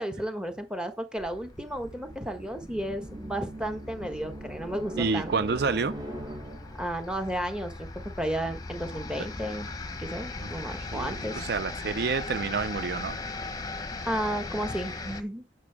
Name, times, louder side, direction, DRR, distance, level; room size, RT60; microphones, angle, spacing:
voice 1, 0.0-5.3 6.8-7.9 8.2-9.7 10.0-11.4 14.0-15.4, right 1 dB, 5° right, 1.3 m, -33 dB
sound 1, 1.2-15.2, left 3 dB, 20° left, 1.0 m, -39 dB
sound 2, 1.4-7.0, right 1 dB, 25° right, 1.7 m, -41 dB
voice 2, 5.0-5.9 10.4-10.5 10.8-13.2, right 4 dB, 60° right, 0.5 m, -29 dB
9.6 x 6.9 x 3.5 m
head